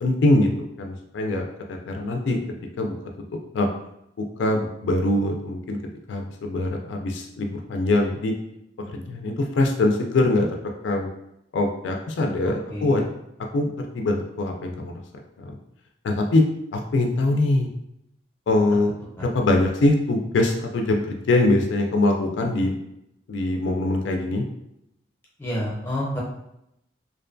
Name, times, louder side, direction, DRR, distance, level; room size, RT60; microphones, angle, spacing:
voice 1, 0.0-0.5 0.8-2.4 2.8-2.9 3.5-3.7 4.2-5.8 6.1-8.3 8.8-10.5 10.8-11.1 11.5-13.0 13.5-15.0 15.4-15.5 16.0-17.7 18.5-18.9 19.2-22.7 23.3-24.5, left 2 dB, 70° left, 2 dB, 0.3 m, -23 dB
voice 2, 25.4-26.2, left 1 dB, 10° left, -5 dB, 0.6 m, -28 dB
2.5 x 2.2 x 2.5 m, 0.81 s
head